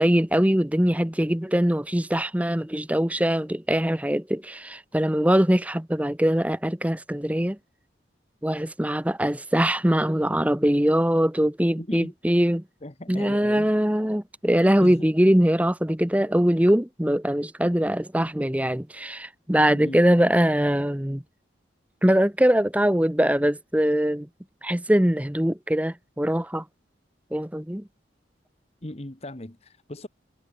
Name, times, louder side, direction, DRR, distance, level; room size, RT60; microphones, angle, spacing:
voice 1, 0.0-7.6 8.4-12.6 13.1-21.2 22.0-24.3 24.6-26.6 27.3-27.8, equal, 10° right, 0.9 m, -22 dB
voice 2, 11.8-12.1 12.8-13.7 14.8-15.1 16.6-16.7 19.7-20.0 28.8-30.1, left 1 dB, 35° left, 1.4 m, -38 dB
head